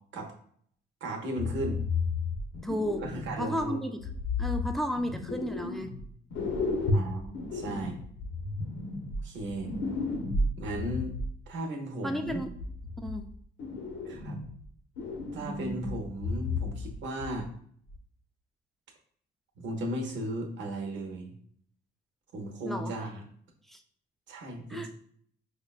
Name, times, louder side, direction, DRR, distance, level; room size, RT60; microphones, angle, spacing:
voice 1, 1.0-1.8 3.0-3.8 6.9-8.0 9.2-9.7 10.6-11.2 11.5-12.4 14.0-14.4 15.3-17.5 19.6-21.3 22.3-23.2 24.3-24.9, right 1 dB, 70° right, 3 dB, 0.8 m, -36 dB
sound 1, 1.4-3.6 4.0-6.0 6.3-11.3 12.3-13.2 13.6-14.6 15.0-17.0 17.2-17.4 17.9-18.0, left 3 dB, 80° left, 0.7 m, -33 dB
voice 2, 2.6-3.0 3.4-4.0 4.4-5.9 12.0-12.5 13.0-13.3 22.6-22.9 23.7-23.8 24.7-24.9, equal, ahead, 5 dB, 0.3 m, -33 dB
5.0 x 2.2 x 2.3 m, 0.62 s
cardioid pair, 90°, 20 cm